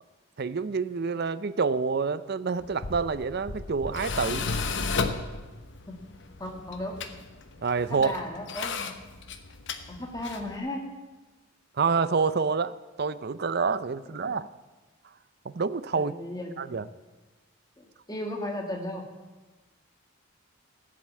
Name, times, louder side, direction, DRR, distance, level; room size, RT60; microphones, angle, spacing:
voice 1, 0.4-4.5 7.6-8.1 11.8-14.5 15.4-16.1 16.6-16.9, right 5 dB, 45° right, 15 dB, 0.5 m, -27 dB
Tools, 2.6-10.6, left 4 dB, 55° left, 0.9 m, -34 dB
voice 2, 6.4-7.0 7.9-8.9 9.9-10.8 15.9-16.8 17.8-19.0, left 1 dB, 15° left, 2 dB, 1.9 m, -35 dB
15.0 x 7.7 x 8.5 m, 1.2 s
head